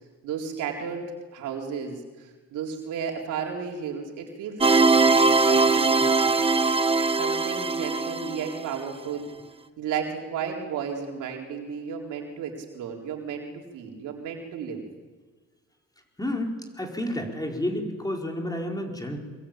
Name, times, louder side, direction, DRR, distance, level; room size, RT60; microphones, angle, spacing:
voice 1, 0.2-1.1 1.3-6.3 7.2-9.3 9.8-14.8, right 7 dB, 90° right, 1 dB, 4.1 m, -33 dB
sound 1, 4.6-8.8, right 3 dB, 20° right, 1.0 m, -21 dB
voice 2, 16.2-19.2, left 1 dB, 15° left, 2 dB, 4.7 m, -30 dB
23.5 x 22.5 x 8.9 m, 1.4 s
cardioid pair, 90°, 30 cm